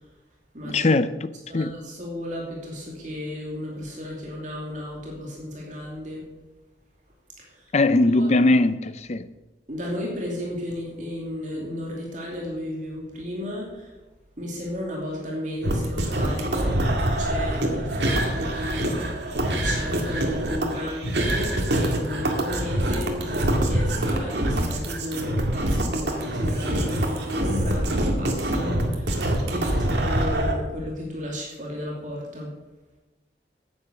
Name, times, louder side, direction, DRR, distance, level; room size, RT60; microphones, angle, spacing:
voice 1, 0.6-1.1 1.5-1.7 7.7-9.2, left 2 dB, 40° left, 0.5 m, -20 dB
voice 2, 1.5-6.2 7.4-7.6 8.2-8.3 9.7-13.9 14.4-16.8 17.2-18.9 19.5-32.5, left 1 dB, 45° right, 2.7 m, -33 dB
sound 1, 15.6-30.5, right 1 dB, 70° right, 2.0 m, -25 dB
9.9 x 8.8 x 6.8 m
head